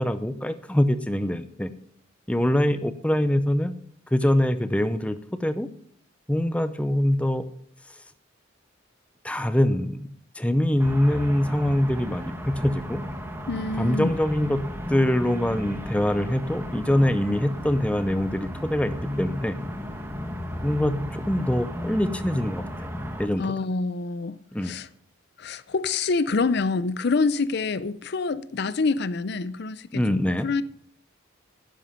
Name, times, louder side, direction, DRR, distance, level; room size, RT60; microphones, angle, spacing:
voice 1, 0.0-1.7 2.3-3.8 4.1-5.7 6.3-7.5 9.2-10.1 10.3-13.0 13.8-14.6 14.9-19.6 20.6-23.5 24.5-24.7 29.9-30.5, left 1 dB, 5° left, 0.6 m, -24 dB
sound 1, 10.8-23.3, left 1 dB, 10° right, 1.2 m, -34 dB
voice 2, 13.5-14.1 23.4-24.4 24.6-24.9 25.4-30.6, left 4 dB, 55° left, 0.5 m, -26 dB
11.0 x 10.5 x 5.7 m
head